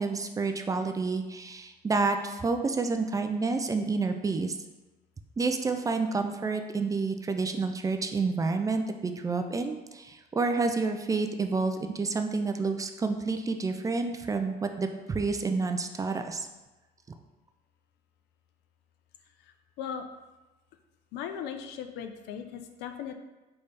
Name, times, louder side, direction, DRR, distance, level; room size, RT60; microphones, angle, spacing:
voice 1, 0.0-4.6 5.4-16.5, right 4 dB, 20° right, 6 dB, 0.3 m, -29 dB
voice 2, 21.1-23.1, left 8 dB, 85° left, 7 dB, 0.5 m, -37 dB
4.0 x 3.3 x 3.3 m, 1.1 s
cardioid pair, 110°, 17 cm